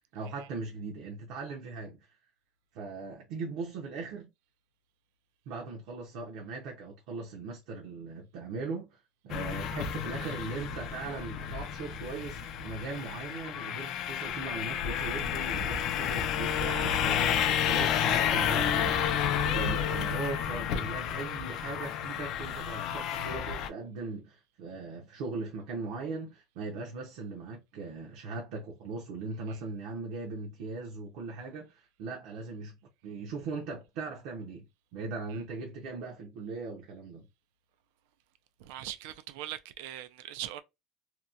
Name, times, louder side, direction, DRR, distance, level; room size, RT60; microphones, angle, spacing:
voice 1, 0.1-2.1 2.7-4.3 5.5-32.8 33.0-37.3, right 4 dB, 60° right, 0.8 m, -39 dB
sound 1, 9.3-23.7, left 8 dB, 45° left, 0.4 m, -31 dB
voice 2, 38.6-40.6, right 12 dB, 75° right, 0.4 m, -41 dB
2.8 x 2.2 x 2.5 m
cardioid pair, 170°, 0 cm